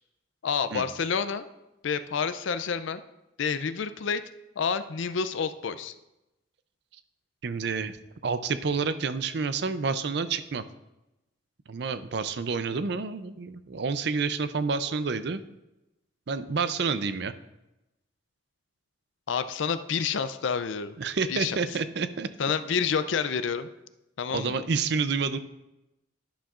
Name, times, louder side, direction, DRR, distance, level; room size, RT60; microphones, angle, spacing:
voice 1, 0.4-1.4 1.8-3.0 3.4-4.2 4.6-5.9 19.3-20.9 21.3-21.6 22.4-23.7 24.2-24.5, left 6 dB, 75° left, 12 dB, 0.4 m, -28 dB
voice 2, 7.4-8.0 8.2-10.7 11.7-15.4 16.3-17.3 21.0-22.3 24.3-25.4, right 5 dB, 60° right, 12 dB, 0.5 m, -29 dB
11.5 x 10.5 x 2.5 m, 0.94 s
head